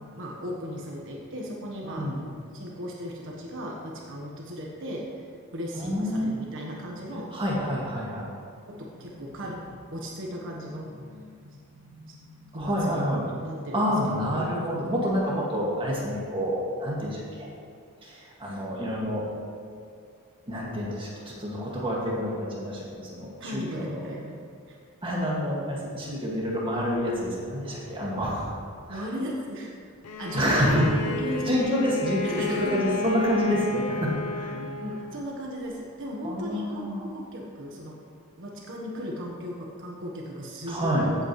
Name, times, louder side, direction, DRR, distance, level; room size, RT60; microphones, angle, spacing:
voice 1, 0.2-2.1 2.5-7.3 8.6-13.0 13.4-13.9 23.4-24.4 24.7-24.8 28.9-29.7 30.2-31.5 32.2-32.9 34.8-38.0 38.4-41.1, equal, 60° right, -2 dB, 1.3 m, -36 dB
voice 2, 1.8-2.2 5.7-6.4 7.3-8.3 12.5-13.2 13.7-17.5 18.0-19.3 20.5-24.1 25.0-28.5 28.9-29.1 30.3-30.9 31.5-34.6 36.2-37.0 40.7-41.1, equal, 25° right, -5 dB, 2.0 m, -28 dB
Bowed string instrument, 30.0-35.2, left 3 dB, 80° left, 0.8 m, -33 dB
15.5 x 8.1 x 3.2 m, 2.3 s
head